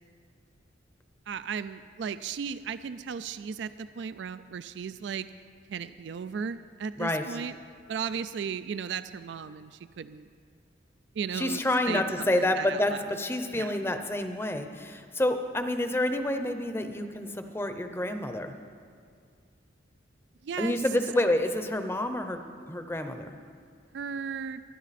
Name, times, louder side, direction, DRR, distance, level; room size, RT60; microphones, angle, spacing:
voice 1, 1.3-5.3 5.7-7.5 7.9-10.3 11.1-13.2 13.5-13.8 20.4-20.8 23.9-24.6, right 6 dB, 65° right, 13 dB, 0.3 m, -36 dB
voice 2, 11.3-18.5 20.6-22.4 22.7-23.4, left 1 dB, 10° left, 7 dB, 0.6 m, -28 dB
22.5 x 10.5 x 4.2 m, 2.2 s
head